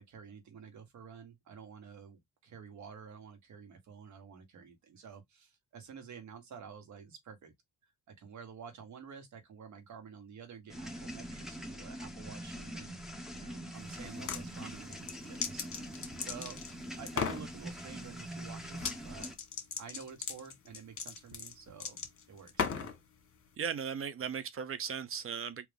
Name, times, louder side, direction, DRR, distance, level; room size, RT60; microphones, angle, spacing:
voice 1, 0.0-7.5 8.1-12.9 13.3-15.9 16.2-16.6 17.0-19.3 19.8-22.0 22.3-22.9, right 6 dB, 70° right, 1.7 m, -50 dB
sound 1, 10.7-19.4, equal, ahead, 1.2 m, -44 dB
sound 2, 14.0-14.4 14.9-16.7 17.1-17.4 18.7-19.0 19.2-23.0, left 6 dB, 45° left, 1.6 m, -36 dB
voice 2, 23.6-25.7, right 7 dB, 45° right, 0.8 m, -37 dB
3.6 x 3.0 x 3.5 m
cardioid pair, 90°, 30 cm